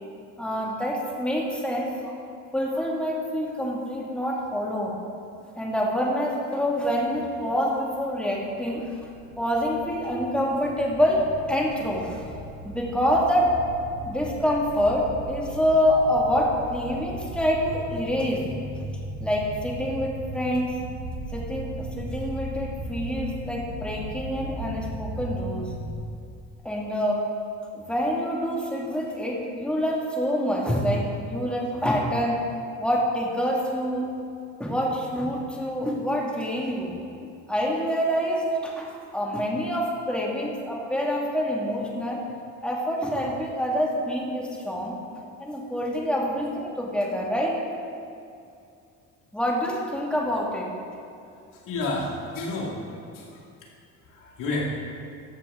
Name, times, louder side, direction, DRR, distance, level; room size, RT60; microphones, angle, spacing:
voice 1, 0.4-2.2 2.5-5.0 5.6-9.0 9.4-12.3 12.6-18.4 19.2-20.8 21.3-25.7 26.6-27.2 27.7-32.4 32.8-34.1 34.6-37.0 37.5-42.2 42.6-45.0 45.4-47.5 49.3-50.7, equal, 5° left, -2 dB, 1.9 m, -26 dB
sound 1, 8.3-26.0, right 1 dB, 45° right, 2.1 m, -37 dB
voice 2, 51.5-52.8 53.1-53.3 54.1-54.6, left 2 dB, 70° left, -3 dB, 2.4 m, -30 dB
13.5 x 6.9 x 3.7 m, 2.5 s
supercardioid pair, 90°, 33 cm